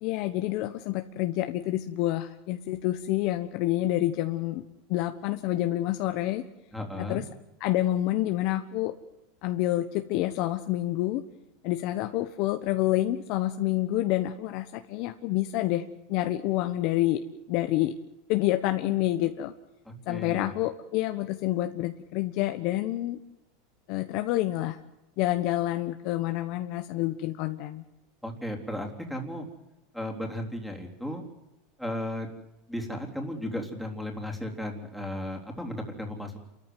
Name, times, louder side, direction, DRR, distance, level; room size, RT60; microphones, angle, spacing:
voice 1, 0.0-4.6 4.9-6.4 7.0-7.2 7.6-8.9 9.4-11.2 11.6-15.8 16.1-17.2 17.5-17.9 18.3-19.5 20.1-23.2 23.9-24.8 25.2-27.8, left 15 dB, 55° left, 7 dB, 1.2 m, -28 dB
voice 2, 6.7-7.2 19.9-20.5 28.2-29.5 29.9-31.3 31.8-32.3 32.7-36.4, left 1 dB, ahead, 2 dB, 3.6 m, -35 dB
29.0 x 14.0 x 9.4 m, 0.94 s
supercardioid pair, 135°, 0 cm